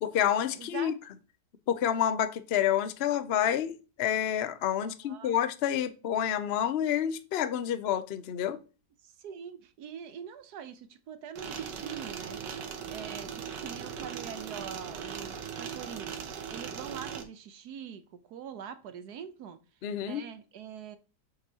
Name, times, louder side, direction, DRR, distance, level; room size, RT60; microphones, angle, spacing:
voice 1, 0.0-0.9 1.7-3.7 4.0-8.6 19.8-20.2, left 10 dB, 65° left, 0.6 m, -28 dB
voice 2, 0.6-0.9 4.8-5.4 9.2-12.4 12.9-16.1 16.5-18.0 18.3-19.6 20.0-21.0, right 8 dB, 70° right, 1.3 m, -43 dB
sound 1, 11.4-17.2, right 7 dB, 90° right, 1.6 m, -39 dB
7.9 x 6.1 x 2.8 m
omnidirectional pair, 1.8 m